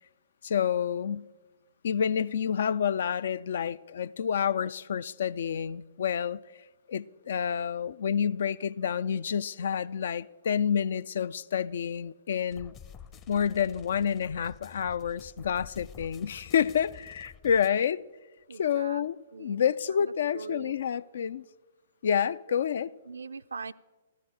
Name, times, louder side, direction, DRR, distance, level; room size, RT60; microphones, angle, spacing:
voice 1, 0.4-1.3 1.8-6.4 6.9-12.7 13.3-18.0 18.6-21.4 22.0-22.9, left 8 dB, 55° left, 0.3 m, -29 dB
sound 1, 12.5-17.7, left 8 dB, 25° left, 0.7 m, -50 dB
voice 2, 18.5-19.1 19.3-20.8 23.0-23.7, right 5 dB, 65° right, 0.4 m, -42 dB
14.0 x 13.5 x 4.8 m
figure-of-eight pair, 115°, 0 cm